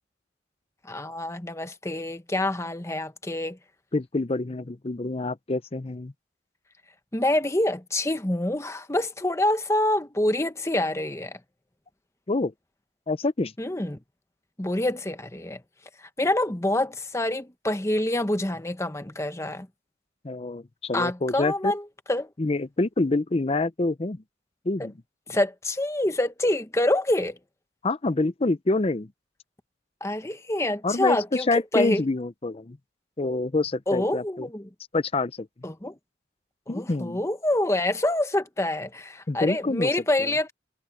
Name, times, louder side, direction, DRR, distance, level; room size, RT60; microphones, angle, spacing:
voice 1, 0.9-3.6 7.1-11.4 13.6-14.0 14.6-15.6 16.2-19.7 20.9-21.8 22.1-22.3 24.8-24.9 25.3-27.4 30.0-32.0 33.9-34.7 35.6-35.9 36.7-40.5, left 1 dB, 15° left, 1.0 m, -26 dB
voice 2, 3.9-6.1 12.3-12.5 13.1-13.5 20.2-21.7 22.4-24.2 24.6-24.9 27.8-29.1 30.8-32.8 33.2-34.5 34.9-35.5 36.7-37.2 39.3-39.9 40.2-40.3, left 2 dB, 30° left, 0.6 m, -26 dB
head